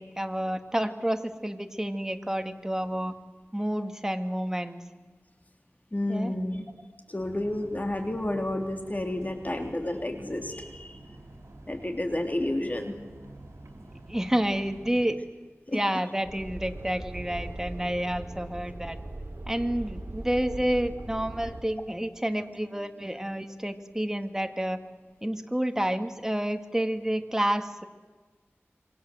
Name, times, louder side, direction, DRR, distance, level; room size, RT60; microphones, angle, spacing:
voice 1, 0.0-3.1 3.5-4.8 6.1-6.3 14.1-15.2 15.7-19.0 19.5-24.8 25.2-27.8, right 1 dB, 10° right, 7 dB, 2.1 m, -29 dB
voice 2, 5.9-6.6 7.1-11.0 11.7-13.0 15.7-15.8, left 1 dB, 35° left, 4 dB, 3.2 m, -30 dB
sound 1, 7.2-15.1, right 1 dB, 75° right, 4.0 m, -49 dB
sound 2, 16.2-21.6, right 1 dB, 50° right, 3.5 m, -39 dB
27.5 x 23.5 x 7.8 m, 1.4 s
wide cardioid pair, 50°, 5 cm